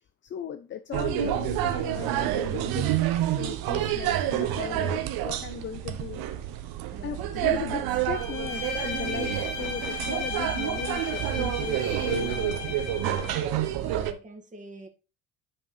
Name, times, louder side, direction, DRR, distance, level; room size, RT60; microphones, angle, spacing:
voice 1, 0.2-3.0 3.4-6.2 6.6-12.8, left 9 dB, 25° left, 0.5 m, -37 dB
sound 1, 0.9-14.1, right 12 dB, 55° right, 1.0 m, -28 dB
voice 2, 6.9-7.7 13.0-14.9, right 2 dB, 15° right, 2.0 m, -45 dB
Bowed string instrument, 8.1-13.5, left 4 dB, 65° left, 2.0 m, -35 dB
9.9 x 5.2 x 3.3 m
hypercardioid pair, 60°, 43 cm